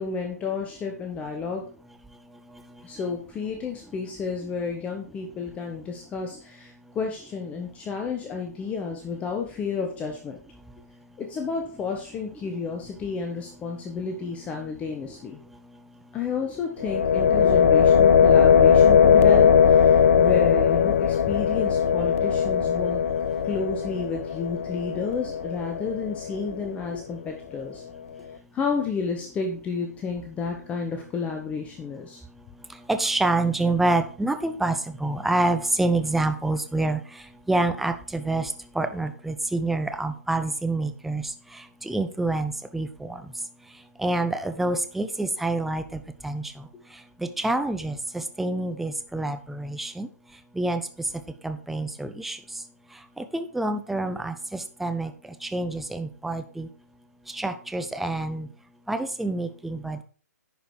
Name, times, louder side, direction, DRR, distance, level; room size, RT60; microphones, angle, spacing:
voice 1, 0.0-1.7 2.8-10.4 11.2-15.4 16.1-23.0 23.4-27.8 28.5-32.2, left 5 dB, 15° left, 4 dB, 0.9 m, -31 dB
sound 1, 16.8-26.7, left 7 dB, 50° left, 0.7 m, -19 dB
voice 2, 32.9-37.0 37.5-41.3 41.8-43.2 44.0-46.6 47.4-50.1 50.6-50.8 51.4-52.4 53.2-55.1 55.4-56.7 57.3-58.5 58.9-60.0, right 2 dB, ahead, 8 dB, 0.5 m, -27 dB
10.5 x 5.1 x 4.5 m, 0.40 s
figure-of-eight pair, 130°, 9 cm